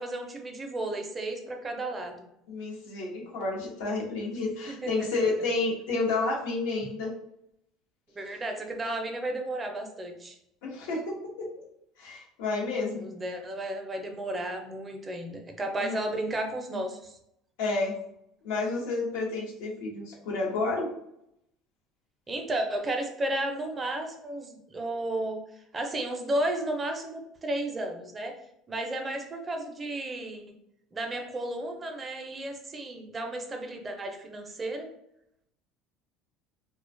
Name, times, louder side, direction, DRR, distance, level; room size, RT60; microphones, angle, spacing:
voice 1, 0.0-2.3 4.7-4.9 5.2-5.3 8.1-10.4 13.0-17.2 22.3-25.4 25.7-28.3 28.7-30.5 30.9-34.9, right 1 dB, 20° right, 4 dB, 0.4 m, -33 dB
voice 2, 2.5-7.1 10.6-11.5 12.0-13.1 15.8-16.0 17.6-18.0 18.4-20.9, left 3 dB, 85° left, -1 dB, 0.7 m, -30 dB
2.4 x 2.1 x 2.5 m, 0.77 s
supercardioid pair, 115°, 0 cm